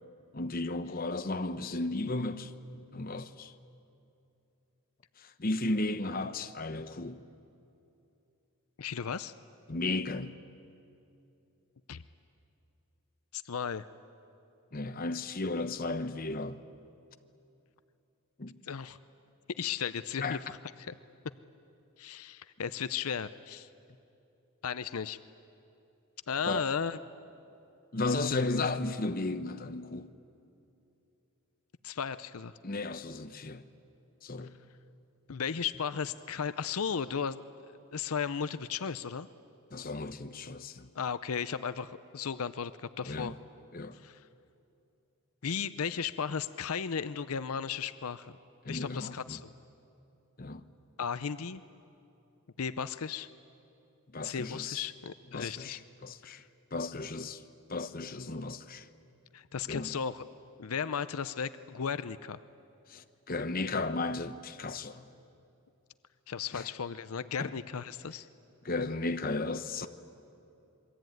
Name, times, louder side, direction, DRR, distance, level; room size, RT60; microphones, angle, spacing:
voice 1, 0.3-2.5 2.9-3.5 5.2-7.2 9.7-10.4 14.7-16.6 18.4-18.6 20.2-20.4 26.4-26.7 27.9-30.1 32.6-33.7 34.2-34.6 35.3-35.4 39.7-40.9 43.0-43.3 43.7-44.0 48.6-49.4 50.4-50.6 54.1-54.9 55.3-56.4 56.7-57.4 57.7-58.9 59.7-60.0 62.9-65.1 66.5-66.7 67.4-67.5 68.6-69.9, left 2 dB, 40° left, 0.9 m, -34 dB
voice 2, 8.8-9.3 11.9-12.0 13.3-13.9 18.7-19.0 19.6-20.4 20.9-21.0 22.0-23.7 24.6-25.2 26.3-27.0 31.8-32.5 35.3-37.4 37.9-39.3 41.0-43.4 44.0-44.2 45.4-48.3 48.7-49.5 51.0-51.6 52.6-53.3 54.2-55.8 56.2-56.4 59.3-60.2 60.6-62.4 66.3-68.3, left 6 dB, 80° left, 0.6 m, -35 dB
27.0 x 22.5 x 9.3 m
head